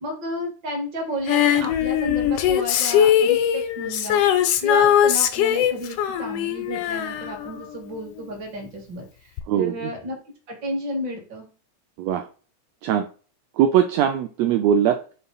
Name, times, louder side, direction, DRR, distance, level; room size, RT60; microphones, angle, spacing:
voice 1, 0.0-9.1 9.5-10.2 10.5-11.5, equal, 45° right, 2 dB, 2.0 m, -32 dB
Female singing, 1.3-8.2 9.4-9.5, left 10 dB, 85° left, 1.4 m, -21 dB
voice 2, 9.5-9.9 12.0-12.2 12.8-13.0 13.6-15.0, right 9 dB, 80° right, 7 dB, 1.5 m, -20 dB
6.9 x 3.7 x 3.9 m, 0.38 s
omnidirectional pair, 3.5 m